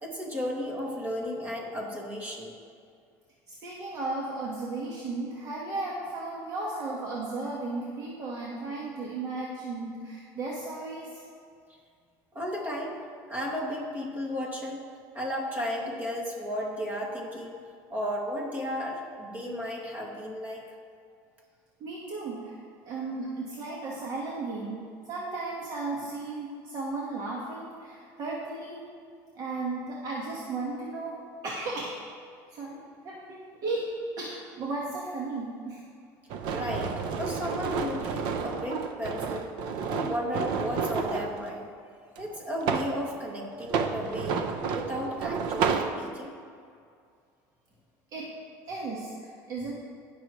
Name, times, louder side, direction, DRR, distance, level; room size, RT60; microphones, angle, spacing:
voice 1, 0.0-2.5 12.3-13.0 13.3-14.8 15.1-17.6 17.9-20.6 36.5-39.5 39.9-41.7 42.2-44.4 44.7-46.3, equal, 20° right, -2 dB, 2.2 m, -34 dB
voice 2, 3.5-11.2 21.8-28.8 29.3-31.2 31.4-32.0 32.5-32.8 33.0-35.8 48.1-48.3 48.7-49.7, right 3 dB, 50° right, -4 dB, 1.4 m, -35 dB
sound 1, 36.3-41.3 42.2-43.0 43.6-45.9, right 6 dB, 65° right, 0.7 m, -30 dB
18.5 x 6.3 x 3.1 m, 2.3 s
cardioid pair, 130°, 8 cm